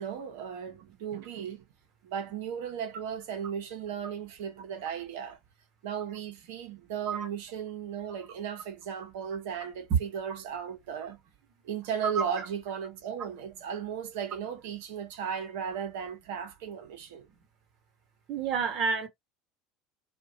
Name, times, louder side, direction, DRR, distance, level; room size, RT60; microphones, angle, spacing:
voice 1, 0.0-1.6 2.0-5.4 5.8-11.2 11.6-17.3, right 8 dB, 65° right, 0.7 m, -36 dB
voice 2, 18.3-19.1, right 6 dB, 50° right, 1.0 m, -28 dB
2.4 x 2.2 x 2.7 m
figure-of-eight pair, 70°, 0 cm